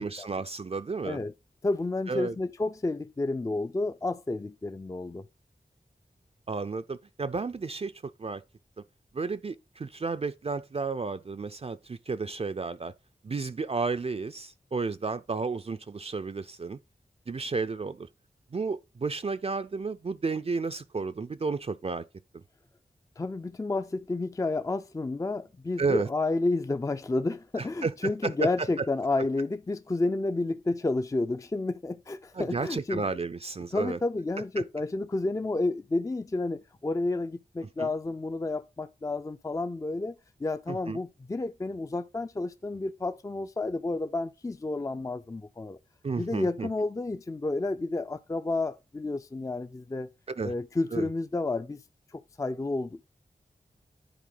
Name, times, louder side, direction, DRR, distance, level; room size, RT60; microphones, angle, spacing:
voice 1, 0.0-1.2 2.1-2.3 6.5-7.9 8.2-8.4 9.1-12.9 13.2-16.8 17.3-18.1 18.5-22.0 22.3-22.4 25.8-26.1 27.6-28.5 32.3-34.0 34.6-34.7 37.8-37.9 40.7-41.0 46.0-46.7 50.4-50.5 50.9-51.1, right 4 dB, 40° right, 0.4 m, -32 dB
voice 2, 1.6-5.2 23.2-33.1 33.7-40.1 40.4-45.8 46.2-50.1 50.4-51.8 52.1-53.0, left 2 dB, 20° left, 0.4 m, -30 dB
10.0 x 4.2 x 3.8 m
wide cardioid pair, 70°, 16 cm